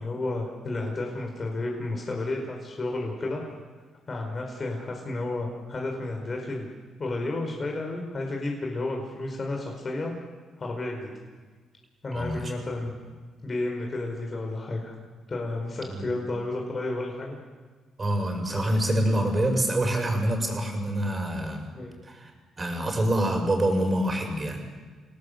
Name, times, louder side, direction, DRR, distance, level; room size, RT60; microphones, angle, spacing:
voice 1, 0.0-3.4 4.1-6.7 7.0-10.2 10.6-11.1 12.0-12.9 13.4-15.0 15.3-17.4 21.7-22.0, left 2 dB, 35° left, 1 dB, 5.0 m, -32 dB
voice 2, 12.1-12.4 15.9-16.0 18.0-21.7 22.1-22.3 22.6-24.6, right 1 dB, 30° right, 3 dB, 7.1 m, -26 dB
27.5 x 18.5 x 8.1 m, 1.4 s
cardioid pair, 90°, 0 cm